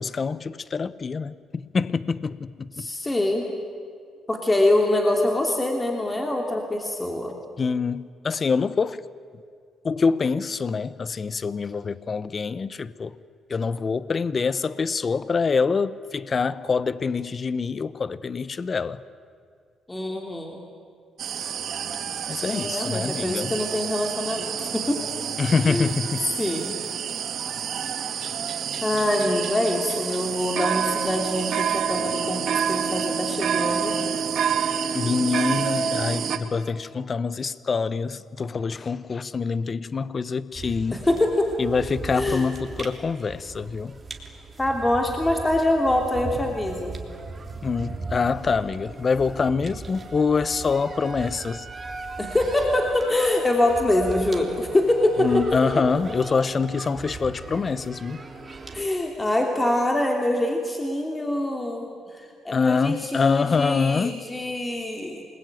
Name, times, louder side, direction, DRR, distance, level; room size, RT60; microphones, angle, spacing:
voice 1, 0.0-2.9 7.6-9.0 9.8-13.2 13.5-19.0 22.3-23.6 25.4-26.3 34.9-41.0 41.6-44.0 47.6-51.7 55.2-58.2 62.5-64.3, left 5 dB, 40° left, 0.8 m, -25 dB
voice 2, 2.8-3.4 4.3-7.3 19.9-20.6 22.5-25.0 25.6-25.9 26.4-26.8 28.8-34.0 40.9-41.5 42.1-42.5 44.6-46.9 52.2-55.4 58.7-61.9 62.1-65.2, left 1 dB, 15° left, 3.1 m, -24 dB
sound 1, 21.2-36.4, right 7 dB, 65° right, 1.9 m, -28 dB
sound 2, 40.5-58.8, right 3 dB, 30° right, 3.2 m, -38 dB
27.5 x 21.0 x 9.2 m
cardioid pair, 90°, 0 cm